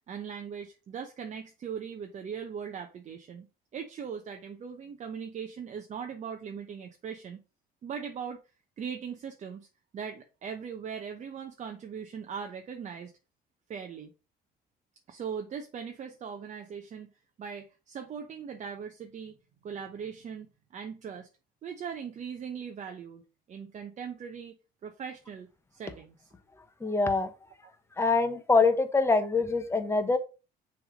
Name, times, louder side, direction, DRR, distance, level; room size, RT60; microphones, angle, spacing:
voice 1, 0.0-3.5 3.7-7.4 7.8-8.4 8.8-9.7 9.9-13.1 13.7-14.1 15.1-17.1 17.4-19.4 19.6-21.3 21.6-23.2 23.5-24.6 24.8-26.3, right 7 dB, 45° right, 0.8 m, -40 dB
voice 2, 26.8-27.3 28.0-30.2, left 3 dB, 15° left, 1.1 m, -24 dB
6.3 x 3.5 x 5.0 m
cardioid pair, 110°, 17 cm